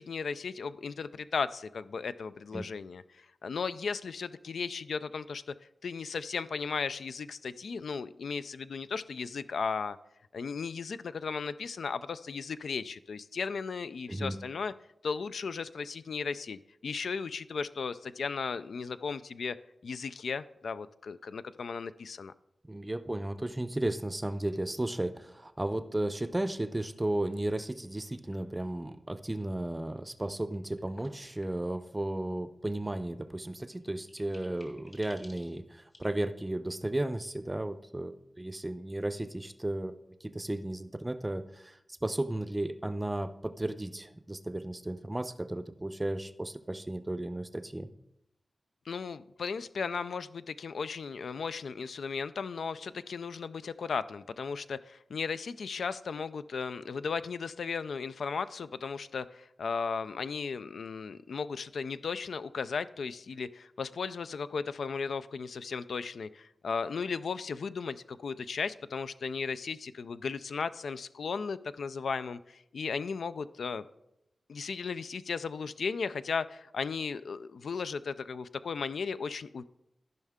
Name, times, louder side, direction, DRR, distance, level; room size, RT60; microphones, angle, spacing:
voice 1, 0.0-5.5 5.8-10.0 10.3-14.7 15.0-19.6 19.8-22.3 48.9-73.9 74.5-79.6, left 5 dB, 85° left, 13 dB, 0.3 m, -36 dB
voice 2, 22.7-39.9 40.2-47.9, right 1 dB, 15° right, 10 dB, 0.5 m, -34 dB
sound 1, 28.3-28.8 30.5-31.9 33.3-33.4 33.7-36.1, left 2 dB, 50° left, 2.2 m, -57 dB
14.5 x 5.4 x 3.6 m, 0.86 s
wide cardioid pair, 90°, 0 cm